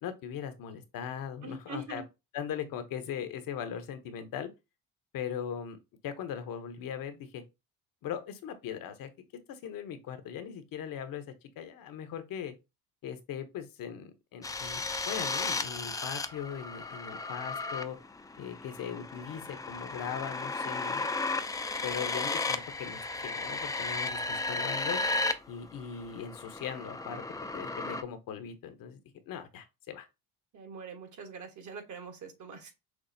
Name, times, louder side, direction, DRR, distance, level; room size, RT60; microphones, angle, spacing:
voice 1, 0.0-2.0 2.3-4.5 5.1-5.8 6.0-7.4 8.0-9.1 9.5-11.2 11.6-12.5 13.0-18.0 18.4-21.1 21.8-25.0 25.5-27.2 27.5-29.0 29.3-30.1, left 8 dB, 65° left, 0.9 m, -39 dB
voice 2, 1.4-2.0 30.5-32.7, right 3 dB, 50° right, 1.3 m, -43 dB
sound 1, 14.4-25.3 25.6-28.0, left 3 dB, 10° left, 0.4 m, -34 dB
6.1 x 2.3 x 2.7 m
supercardioid pair, 90°, 37 cm